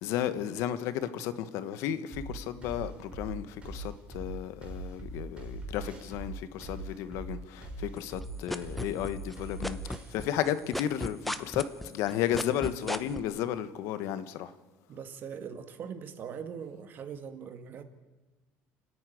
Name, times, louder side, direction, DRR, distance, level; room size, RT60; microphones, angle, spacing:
voice 1, 0.0-9.8 10.1-14.5, left 11 dB, 75° left, 1.3 m, -33 dB
sound 1, 2.1-10.1, right 2 dB, 20° right, 4.0 m, -41 dB
sound 2, 8.0-9.3 9.6-13.2, equal, ahead, 0.7 m, -34 dB
voice 2, 14.9-17.8, right 7 dB, 40° right, 1.8 m, -41 dB
29.5 x 9.9 x 9.3 m
cardioid pair, 155°, 5 cm